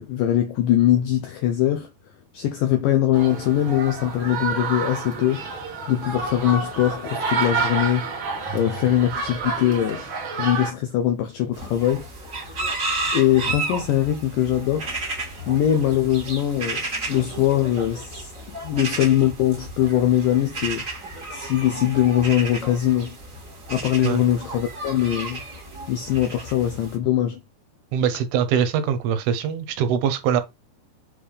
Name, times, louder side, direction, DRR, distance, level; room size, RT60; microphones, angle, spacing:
voice 1, 0.0-1.9 2.3-8.1 8.5-10.0 10.4-12.3 13.1-14.9 15.5-18.3 18.6-20.8 21.3-23.2 23.7-25.4 25.9-27.4, left 11 dB, 80° left, 1.9 m, -22 dB
sound 1, 3.1-10.7, right 4 dB, 55° right, 1.3 m, -29 dB
sound 2, 11.5-27.0, right 2 dB, 30° right, 1.7 m, -33 dB
voice 2, 27.9-30.4, right 8 dB, 75° right, 2.8 m, -22 dB
7.7 x 3.6 x 5.0 m
omnidirectional pair, 4.8 m